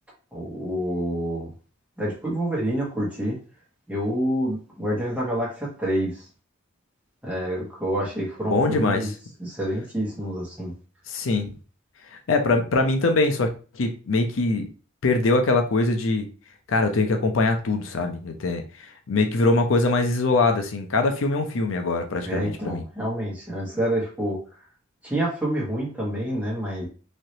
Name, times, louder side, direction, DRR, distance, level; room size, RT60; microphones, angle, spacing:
voice 1, 0.3-1.5 2.0-3.4 3.9-6.2 7.2-9.1 9.4-10.7 22.2-24.4 25.0-26.9, right 1 dB, 5° right, -6 dB, 1.3 m, -27 dB
voice 2, 8.5-9.1 11.1-11.5 12.1-13.5 13.7-14.7 15.0-16.3 16.7-22.8, left 3 dB, 75° left, 5 dB, 0.6 m, -23 dB
3.2 x 2.9 x 2.7 m, 0.36 s
head